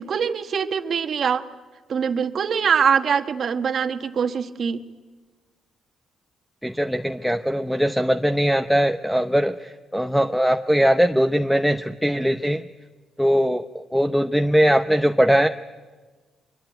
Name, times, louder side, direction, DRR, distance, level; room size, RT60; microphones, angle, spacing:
voice 1, 0.0-1.4 1.9-4.8, right 6 dB, 55° right, 8 dB, 1.4 m, -23 dB
voice 2, 6.6-12.6 13.2-15.5, equal, ahead, 6 dB, 0.7 m, -20 dB
23.5 x 23.0 x 9.1 m, 1.4 s
cardioid pair, 90°, 0 cm